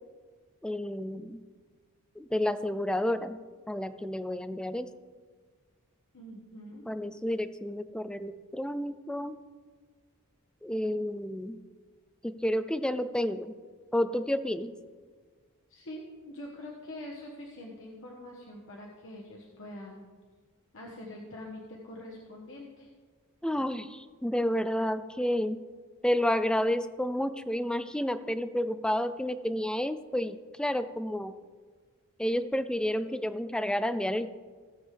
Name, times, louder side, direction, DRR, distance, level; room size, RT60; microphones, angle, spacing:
voice 1, 0.6-1.4 2.2-3.4 3.7-4.9 6.9-9.4 10.6-11.6 12.2-13.5 13.9-14.7 23.4-25.6 26.0-31.3 32.2-34.3, left 1 dB, 5° left, 12 dB, 0.3 m, -30 dB
voice 2, 6.1-6.8 15.7-20.0 20.7-22.9, left 1 dB, 60° left, -2 dB, 1.2 m, -44 dB
16.5 x 7.3 x 3.3 m, 1.5 s
head